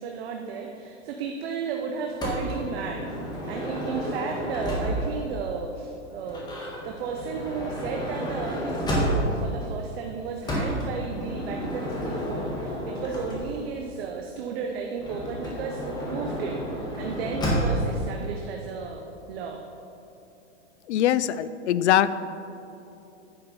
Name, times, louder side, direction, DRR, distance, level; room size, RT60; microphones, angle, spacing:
voice 1, 0.0-6.5 6.8-19.6, right 5 dB, 55° right, 2 dB, 0.9 m, -34 dB
Motor vehicle (road) / Sliding door, 2.2-5.3 6.2-9.5 10.4-13.8 15.0-17.9, equal, 10° left, 1.5 m, -30 dB
voice 2, 20.9-22.1, left 11 dB, 70° left, 15 dB, 0.5 m, -22 dB
9.9 x 5.7 x 5.4 m, 2.8 s
hypercardioid pair, 150°, 35 cm